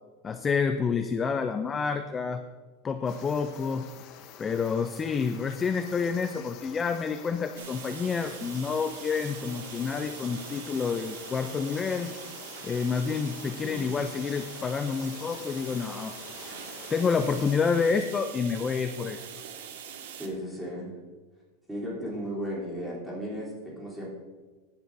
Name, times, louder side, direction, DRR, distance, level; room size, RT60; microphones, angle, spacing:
voice 1, 0.2-2.4 2.8-3.9 4.4-12.1 12.6-16.2 16.9-19.2, left 5 dB, 15° left, 8 dB, 0.4 m, -28 dB
sound 1, 3.1-17.6, left 9 dB, 35° left, 0.9 m, -47 dB
sound 2, 7.6-20.3, right 8 dB, 90° right, 1.8 m, -43 dB
voice 2, 20.1-20.9 21.7-24.1, equal, 5° right, -6 dB, 3.3 m, -35 dB
17.0 x 10.5 x 2.7 m, 1.4 s
supercardioid pair, 170°, 0 cm